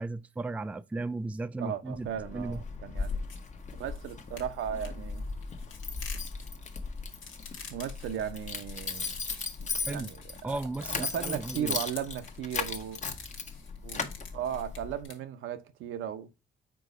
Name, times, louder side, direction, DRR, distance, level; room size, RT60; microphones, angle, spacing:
voice 1, 0.0-2.1 2.3-2.6 9.8-10.1 10.4-11.8, right 2 dB, 5° right, 0.3 m, -35 dB
voice 2, 1.6-3.2 3.7-5.3 7.7-9.1 9.6-10.6 10.9-13.0 13.8-14.1 14.3-16.3, right 9 dB, 85° right, 0.8 m, -36 dB
Keys jangling, 1.9-15.0, left 4 dB, 35° left, 0.9 m, -37 dB
sound 1, 3.0-15.2, left 5 dB, 80° left, 1.6 m, -48 dB
4.6 x 4.0 x 5.2 m
cardioid pair, 90°, 20 cm